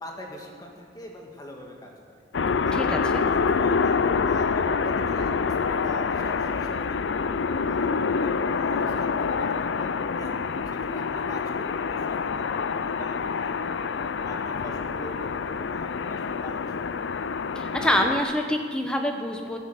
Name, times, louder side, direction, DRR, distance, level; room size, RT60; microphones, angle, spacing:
voice 1, 0.0-1.9 2.6-7.2 7.6-10.4 10.7-13.9 14.2-16.7, equal, 20° left, 0 dB, 1.8 m, -43 dB
sound 1, 2.3-18.2, left 5 dB, 90° left, 0.5 m, -26 dB
voice 2, 2.7-3.2 17.5-19.6, left 1 dB, 5° left, 3 dB, 1.1 m, -26 dB
14.5 x 7.2 x 7.9 m, 2.1 s
head